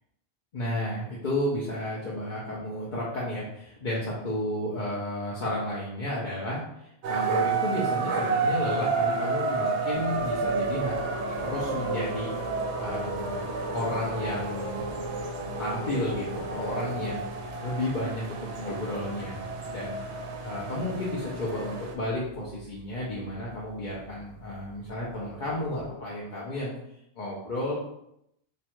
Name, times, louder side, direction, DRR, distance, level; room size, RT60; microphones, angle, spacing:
voice 1, 0.5-12.3 12.8-15.1 15.6-17.3 17.6-20.0 20.4-26.7 27.2-27.7, left 1 dB, 45° left, -7 dB, 0.9 m, -32 dB
sound 1, 7.0-21.9, right 4 dB, 75° right, 0.8 m, -31 dB
sound 2, 9.9-25.9, left 2 dB, 25° left, 1.2 m, -41 dB
3.2 x 2.4 x 4.4 m, 0.78 s
omnidirectional pair, 1.2 m